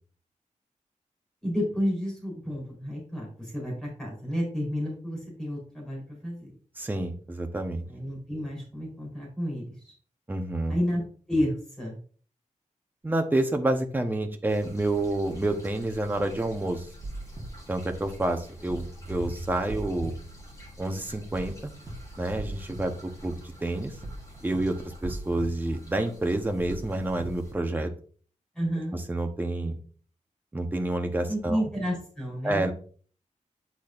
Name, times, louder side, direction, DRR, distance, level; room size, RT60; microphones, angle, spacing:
voice 1, 1.4-6.5 7.9-9.9 10.7-11.0 11.3-12.0 28.6-29.0 31.3-32.6, equal, 5° left, -3 dB, 3.7 m, -31 dB
voice 2, 6.8-7.8 10.3-10.8 13.0-16.9 17.7-20.1 20.8-21.7 22.2-23.9 24.4-27.9 28.9-29.8 30.5-31.6 32.4-32.7, right 1 dB, 15° right, 4 dB, 0.9 m, -29 dB
sound 1, 14.5-27.5, equal, 25° left, 3.9 m, -46 dB
sound 2, 17.0-17.5 18.7-18.9 19.2-19.3 19.7-20.1 21.4-21.6 21.9-22.0 22.4-22.8 24.0-24.2 24.5-24.6 25.0-25.5 26.7-26.9 27.2-27.3, right 2 dB, 30° right, 1.4 m, -37 dB
8.7 x 6.2 x 2.5 m, 0.42 s
wide cardioid pair, 155°, 13 cm